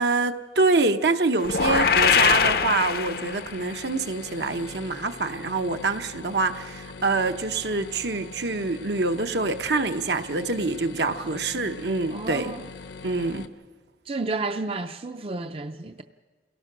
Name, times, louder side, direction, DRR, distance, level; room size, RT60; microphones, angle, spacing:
voice 1, 0.0-12.5 13.0-13.5, right 3 dB, 70° right, 1.0 m, -25 dB
sound 1, 1.4-3.6, left 6 dB, 55° left, 0.7 m, -22 dB
sound 2, 1.5-13.5, left 3 dB, 80° left, 1.1 m, -42 dB
voice 2, 12.1-12.7 14.1-16.0, right 3 dB, 30° right, 0.5 m, -32 dB
28.0 x 17.5 x 6.1 m
head